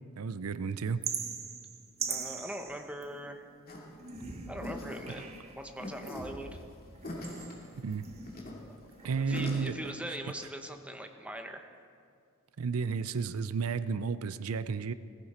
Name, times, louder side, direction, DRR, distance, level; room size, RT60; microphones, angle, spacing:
voice 1, 0.2-1.0 7.8-8.0 9.0-9.7 12.6-14.9, right 5 dB, 80° right, 14 dB, 0.5 m, -32 dB
sound 1, 1.0-3.5 4.0-5.6 6.0-8.6 8.9-9.6, right 6 dB, 30° right, 1.0 m, -41 dB
voice 2, 2.1-3.4 4.5-5.3 5.6-6.5 9.0-11.7, right 1 dB, 5° right, 5 dB, 0.9 m, -41 dB
sound 2, 3.7-9.6, left 1 dB, 45° left, 2.5 m, -42 dB
17.0 x 15.5 x 4.3 m, 2.3 s
head